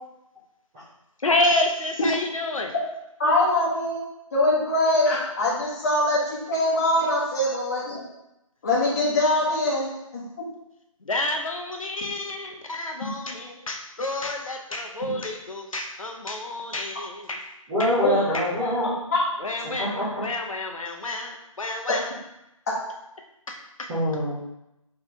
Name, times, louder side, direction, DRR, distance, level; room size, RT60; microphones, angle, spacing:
voice 1, 1.2-2.7 11.1-17.4 17.8-18.5 19.4-22.1 23.5-23.9, left 2 dB, 70° left, 3 dB, 0.8 m, -29 dB
voice 2, 3.2-4.0 4.3-8.0 8.6-10.2 18.0-18.1 19.1-19.2, left 1 dB, 30° left, -7 dB, 1.2 m, -23 dB
voice 3, 17.7-19.0 19.8-20.1 23.9-24.3, left 1 dB, 5° right, -12 dB, 0.5 m, -24 dB
4.4 x 3.3 x 3.4 m, 0.88 s
figure-of-eight pair, 155°, 18 cm